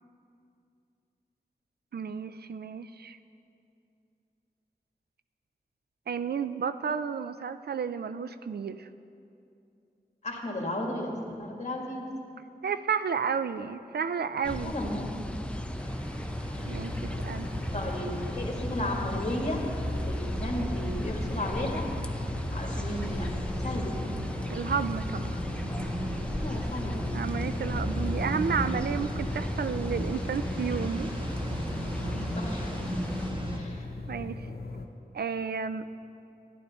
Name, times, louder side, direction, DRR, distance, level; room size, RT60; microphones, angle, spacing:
voice 1, 1.9-3.2 6.1-8.9 12.6-14.7 16.7-17.5 24.5-25.4 27.1-31.1 34.1-34.5 35.1-35.9, right 6 dB, 85° right, 12 dB, 0.4 m, -32 dB
voice 2, 10.2-12.1 14.6-15.1 16.6-16.9 17.7-19.6 19.9-21.8 22.5-23.3 23.6-24.2 26.4-27.0 32.0-32.7 33.5-33.9, left 1 dB, 45° left, 0 dB, 1.9 m, -34 dB
sound 1, 14.4-33.3, left 1 dB, 5° left, 0.6 m, -36 dB
sound 2, 15.8-33.6, equal, 30° right, 1.3 m, -37 dB
sound 3, 16.6-34.9, left 3 dB, 75° left, 0.8 m, -39 dB
14.5 x 11.0 x 4.2 m, 2.6 s
wide cardioid pair, 80°, 16 cm